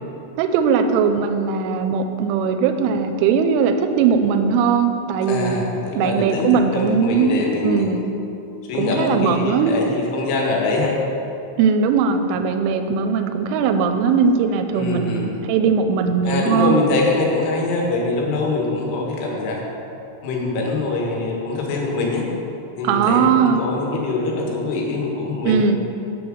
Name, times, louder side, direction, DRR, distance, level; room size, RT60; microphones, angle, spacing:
voice 1, 0.4-5.5 5.9-8.1 8.8-9.8 11.6-16.8 22.8-23.6 25.5-25.8, right 6 dB, 85° right, 7 dB, 3.0 m, -19 dB
voice 2, 5.3-7.9 8.7-11.0 14.7-15.4 16.2-19.6 20.2-22.3 22.8-25.6, left 3 dB, 80° left, -1 dB, 3.7 m, -23 dB
8.0 x 7.2 x 6.3 m, 2.8 s
omnidirectional pair, 5.7 m